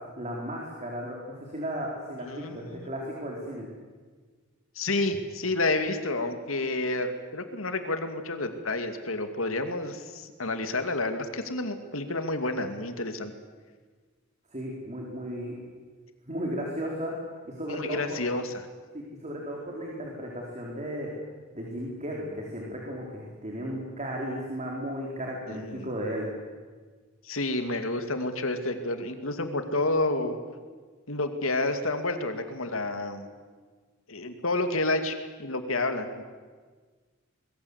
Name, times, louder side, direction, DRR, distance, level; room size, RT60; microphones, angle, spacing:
voice 1, 0.2-3.7 14.5-15.6 16.3-17.1 17.4-18.0 18.9-21.1 21.5-26.3, equal, 35° right, -1 dB, 4.4 m, -35 dB
voice 2, 2.2-2.9 4.8-13.3 17.8-18.7 25.5-25.9 27.2-30.4 31.1-33.3 34.1-36.2, left 2 dB, 85° left, 7 dB, 2.5 m, -30 dB
25.0 x 21.5 x 8.3 m, 1.5 s
head